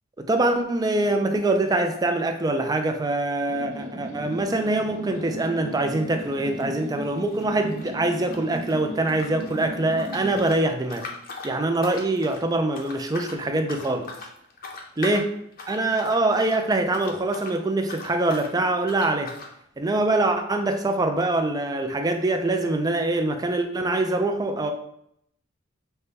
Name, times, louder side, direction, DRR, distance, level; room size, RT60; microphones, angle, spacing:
voice 1, 0.2-11.1 11.4-14.1 15.0-15.3 15.7-19.3 19.8-24.7, right 2 dB, 20° right, 6 dB, 0.4 m, -24 dB
sound 1, 3.5-10.5, right 1 dB, 35° right, 1.1 m, -36 dB
sound 2, 5.7-5.9 6.2-8.7 9.0-17.6 17.8-18.5 18.9-19.5, left 3 dB, 45° left, 0.7 m, -40 dB
5.6 x 2.2 x 3.3 m, 0.72 s
head